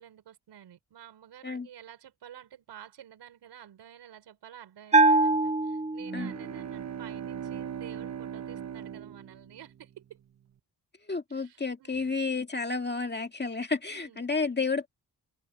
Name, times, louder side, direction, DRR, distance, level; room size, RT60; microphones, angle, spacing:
voice 1, 0.0-10.2 11.3-12.1 13.9-14.2, right 10 dB, 90° right, 5.3 m, -50 dB
Bell, 4.9-6.5, right 2 dB, 15° right, 1.2 m, -23 dB
sound 1, 6.0-10.0, right 8 dB, 40° right, 0.9 m, -39 dB
voice 2, 11.1-14.9, left 4 dB, 25° left, 1.9 m, -31 dB
cardioid pair, 80°, 40 cm